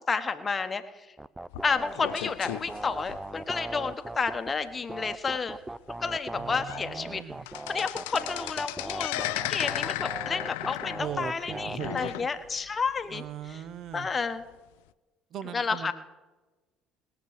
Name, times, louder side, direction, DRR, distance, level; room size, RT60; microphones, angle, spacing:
voice 1, 0.1-1.1 1.6-5.6 6.0-7.2 7.7-13.2 13.5-13.6 13.9-14.4 15.5-15.9, left 5 dB, 30° left, 9 dB, 1.1 m, -31 dB
sound 1, 1.2-4.5 4.9-12.1, right 2 dB, 10° right, 0.4 m, -39 dB
sound 2, 1.5-3.7 4.2-4.4 4.7-4.8 5.4-5.5 6.1-6.2 6.5-6.9 7.2-12.7 13.0-13.1 13.9-14.0, left 18 dB, 70° left, 0.4 m, -35 dB
voice 2, 6.3-7.5 11.0-12.6 13.1-14.1 15.3-15.9, right 9 dB, 50° right, 15 dB, 0.9 m, -39 dB
20.0 x 7.0 x 6.6 m, 1.2 s
figure-of-eight pair, 55°, 0 cm